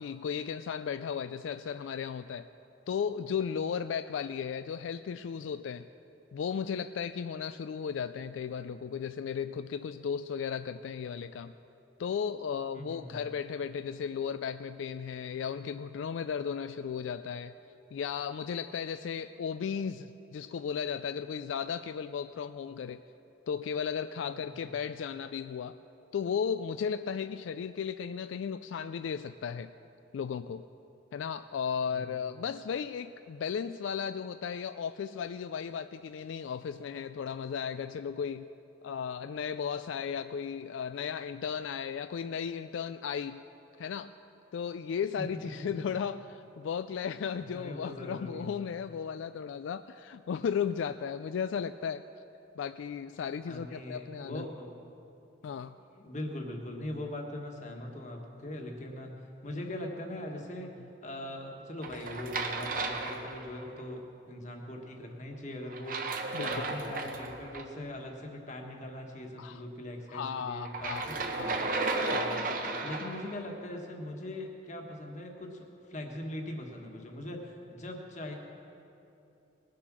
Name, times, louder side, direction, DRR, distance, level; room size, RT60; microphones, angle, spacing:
voice 1, 0.0-2.5 2.9-5.9 6.3-11.5 12.0-17.5 17.9-23.0 23.5-25.8 26.1-29.7 30.1-30.7 31.1-38.5 38.8-43.4 43.8-44.1 44.5-52.1 52.6-54.5 55.4-55.7 66.3-66.6 69.4-69.6 70.1-71.0 71.3-71.7 72.1-72.2, left 7 dB, 80° left, 11 dB, 0.3 m, -35 dB
voice 2, 12.7-13.2 24.2-24.7 31.9-32.1 45.4-45.5 47.5-48.5 53.4-54.7 55.4-71.2 72.0-72.5 72.8-78.4, left 1 dB, 40° left, 2 dB, 1.5 m, -41 dB
sound 1, 61.8-63.8 65.7-67.6 70.6-73.3, right 3 dB, 45° right, 1.0 m, -34 dB
20.5 x 7.7 x 6.1 m, 2.8 s
head